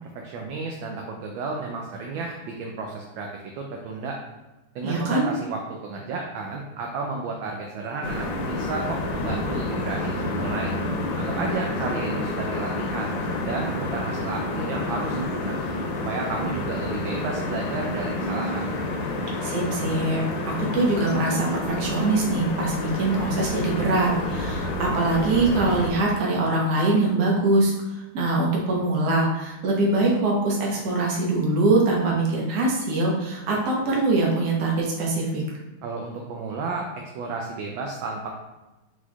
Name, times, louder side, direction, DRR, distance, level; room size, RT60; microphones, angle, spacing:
voice 1, 0.0-4.2 4.7-10.7 11.1-15.6 16.0-18.8 35.8-36.9 37.1-38.3, right 3 dB, 75° right, 1 dB, 1.2 m, -32 dB
voice 2, 4.8-5.3 19.4-27.7 28.1-35.4, right 2 dB, 55° right, -3 dB, 1.3 m, -23 dB
sound 1, 8.0-25.9, left 2 dB, 90° left, 1.6 m, -29 dB
4.4 x 4.3 x 2.3 m, 1.0 s
omnidirectional pair, 2.4 m